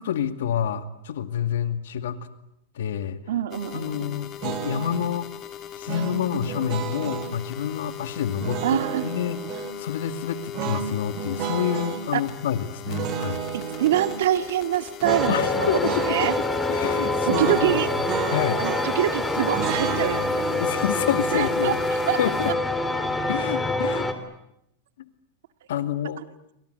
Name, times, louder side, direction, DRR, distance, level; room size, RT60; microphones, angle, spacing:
voice 1, 0.0-2.2 2.8-3.2 3.7-5.3 5.7-9.4 9.8-13.4 15.3-16.2 16.7-17.8 18.3-18.6 20.6-21.8 22.2-22.5 23.3-24.1 25.7-26.2, left 9 dB, 85° left, 9 dB, 2.2 m, -28 dB
voice 2, 3.3-4.2 6.3-6.5 8.6-9.1 12.1-12.2 13.5-16.3 17.2-17.9 18.6-20.2 21.3-22.2, right 12 dB, 80° right, 9 dB, 2.0 m, -25 dB
sound 1, 3.5-22.5, left 10 dB, 35° left, 3.1 m, -40 dB
sound 2, 4.4-5.1 5.9-7.3 8.4-9.8 10.5-12.0 12.9-14.2 15.0-15.4 15.6-16.4 17.3-19.0 19.5-22.6, right 9 dB, 45° right, 2.3 m, -32 dB
sound 3, 15.0-24.1, left 2 dB, 10° left, 3.2 m, -26 dB
29.0 x 25.0 x 8.1 m, 0.81 s
supercardioid pair, 135°, 0 cm